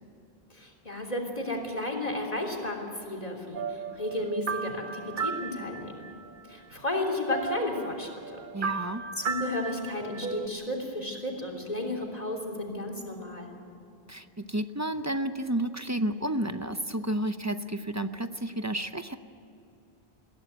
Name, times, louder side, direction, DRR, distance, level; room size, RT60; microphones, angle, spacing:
voice 1, 0.5-6.1 6.5-8.4 8.8-8.9 9.1-13.5, left 1 dB, 35° left, 1 dB, 3.4 m, -33 dB
sound 1, 3.5-6.3 6.7-6.8 7.1-10.5, right 6 dB, 55° right, 0.9 m, -35 dB
voice 2, 8.5-9.0 14.1-19.2, right 1 dB, 20° right, 10 dB, 0.6 m, -31 dB
22.0 x 16.0 x 9.4 m, 2.8 s
omnidirectional pair, 1.1 m